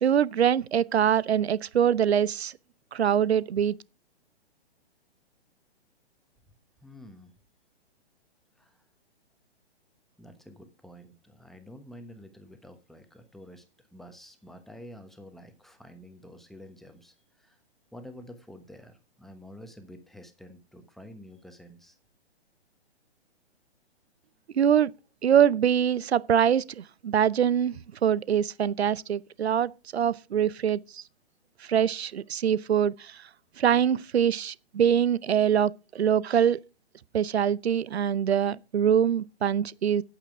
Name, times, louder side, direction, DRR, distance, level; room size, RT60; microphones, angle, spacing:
voice 1, 0.0-2.5 2.9-3.7 24.5-24.9 25.2-27.8 28.0-31.0 31.7-33.2 33.6-36.6 37.1-40.0, right 9 dB, 70° right, 0.7 m, -24 dB
voice 2, 6.8-7.3 8.6-8.8 10.2-17.6 17.9-22.0, equal, ahead, 1.1 m, -49 dB
8.9 x 8.7 x 4.8 m
figure-of-eight pair, 125°, 33 cm